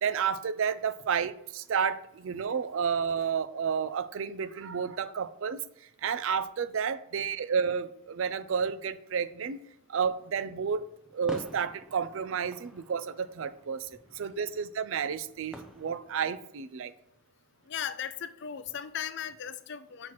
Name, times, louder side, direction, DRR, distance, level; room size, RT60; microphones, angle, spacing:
voice 1, 0.0-5.6 6.0-9.6 9.9-10.9 11.1-16.9, right 6 dB, 65° right, 13 dB, 0.4 m, -31 dB
sound 1, 10.0-16.4, equal, 5° right, 0.6 m, -49 dB
voice 2, 17.7-20.1, left 8 dB, 50° left, 12 dB, 0.4 m, -37 dB
7.5 x 5.9 x 3.0 m, 0.75 s
head